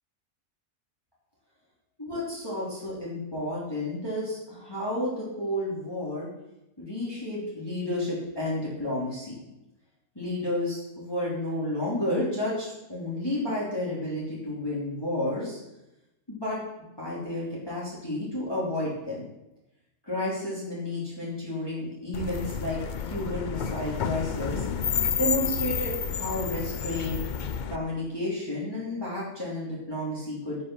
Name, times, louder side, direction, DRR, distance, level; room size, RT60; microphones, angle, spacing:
voice 1, 2.0-6.3 6.8-9.4 10.1-15.6 16.3-16.6 17.0-19.3 20.0-22.8 23.0-24.7 25.2-27.2 27.7-30.6, left 1 dB, 15° left, -6 dB, 3.1 m, -31 dB
sound 1, 22.1-27.8, left 7 dB, 70° left, 0.4 m, -30 dB
16.5 x 5.7 x 6.2 m, 0.90 s
omnidirectional pair, 1.6 m